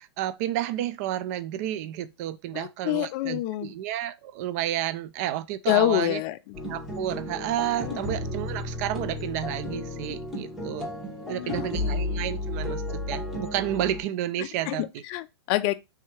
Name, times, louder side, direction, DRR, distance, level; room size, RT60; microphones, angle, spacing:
voice 1, 0.0-6.2 6.7-10.9 11.3-15.0, right 12 dB, 40° right, 0.4 m, -31 dB
voice 2, 2.5-3.7 5.7-6.4 7.8-8.0 11.2-12.0 14.7-15.7, left 14 dB, 35° left, 0.4 m, -27 dB
sound 1, 6.5-14.0, left 1 dB, ahead, 1.1 m, -33 dB
3.5 x 2.7 x 4.5 m
hypercardioid pair, 145°, 14 cm